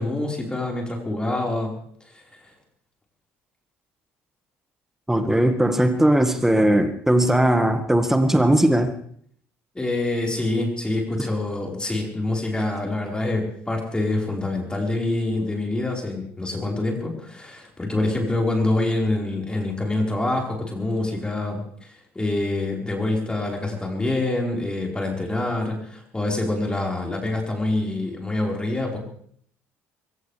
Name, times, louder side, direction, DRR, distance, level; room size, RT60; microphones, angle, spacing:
voice 1, 0.0-1.8 2.1-2.4 9.7-29.0, left 2 dB, 15° left, 0 dB, 4.7 m, -26 dB
voice 2, 5.1-8.9, right 1 dB, 5° right, 7 dB, 1.8 m, -19 dB
23.0 x 17.0 x 3.4 m, 0.64 s
hypercardioid pair, 55°, 6 cm